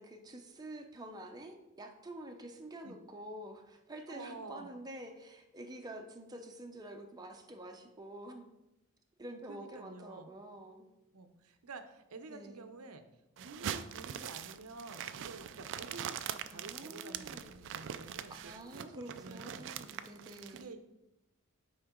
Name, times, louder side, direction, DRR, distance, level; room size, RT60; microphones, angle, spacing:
voice 1, 0.0-8.5 9.2-10.9 12.3-12.7 16.5-17.5 18.3-20.7, right 1 dB, 20° right, 3 dB, 0.7 m, -48 dB
voice 2, 4.1-4.8 9.5-10.4 11.1-13.0 13.4-19.7 20.5-20.8, right 3 dB, 85° right, 8 dB, 0.8 m, -50 dB
sound 1, 13.4-20.6, right 9 dB, 60° right, 0.4 m, -43 dB
8.8 x 4.5 x 3.7 m, 0.91 s
head